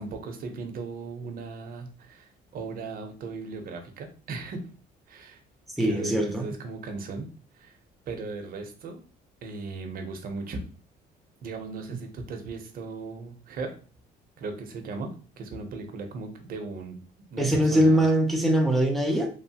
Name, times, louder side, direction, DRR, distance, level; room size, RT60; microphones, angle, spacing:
voice 1, 0.0-4.6 5.1-5.4 5.8-7.3 7.5-7.8 8.1-9.0 9.4-10.6 11.4-13.7 14.4-15.1 15.4-17.0 17.3-18.0, right 3 dB, 60° right, 4 dB, 0.7 m, -37 dB
voice 2, 5.8-6.5 17.4-19.3, equal, ahead, 0 dB, 0.5 m, -22 dB
3.0 x 2.0 x 2.8 m, 0.38 s
cardioid pair, 110°, 17 cm